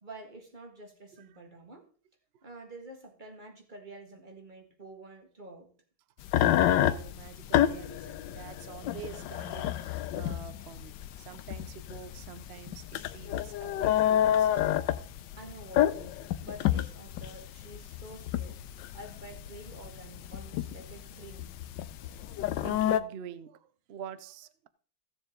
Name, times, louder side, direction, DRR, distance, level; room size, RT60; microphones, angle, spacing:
voice 1, 0.0-1.9 2.4-5.7 15.4-18.6 18.9-21.6, right 1 dB, 25° right, 1.8 m, -48 dB
sound 1, 6.2-23.0, left 11 dB, 70° left, 1.2 m, -29 dB
voice 2, 6.8-14.5 22.2-24.7, right 8 dB, 85° right, 0.5 m, -47 dB
15.5 x 7.0 x 3.8 m
omnidirectional pair, 2.1 m